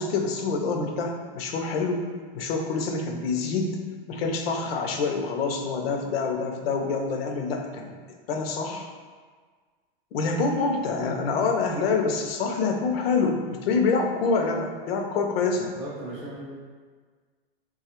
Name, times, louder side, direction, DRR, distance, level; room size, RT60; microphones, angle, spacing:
voice 1, 0.0-2.1 2.3-3.7 4.1-7.9 8.3-8.9 10.1-15.7, left 4 dB, 75° left, 3 dB, 0.6 m, -26 dB
voice 2, 15.8-16.4, right 1 dB, 10° right, -11 dB, 0.5 m, -36 dB
3.2 x 2.4 x 4.3 m, 1.6 s
supercardioid pair, 160°, 30 cm